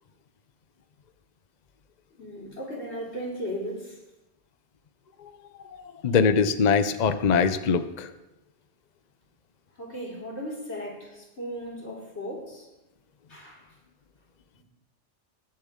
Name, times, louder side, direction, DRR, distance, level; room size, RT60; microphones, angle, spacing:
voice 1, 2.2-4.0 9.8-12.7 13.3-13.7 14.5-14.6, equal, 85° left, 3.8 m, -36 dB
voice 2, 6.0-8.1, left 5 dB, 45° left, 0.7 m, -22 dB
21.5 x 7.6 x 3.7 m
omnidirectional pair, 1.1 m